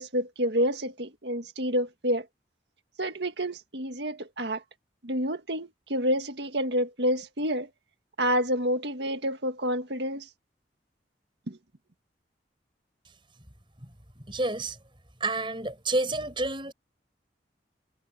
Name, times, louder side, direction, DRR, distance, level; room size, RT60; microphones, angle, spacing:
voice 1, 0.0-2.3 3.0-4.6 5.0-7.7 8.2-10.3 11.5-11.6, equal, 75° right, 1.9 m, -28 dB
voice 2, 14.3-14.8 15.2-16.7, right 2 dB, 30° right, 7.2 m, -29 dB
head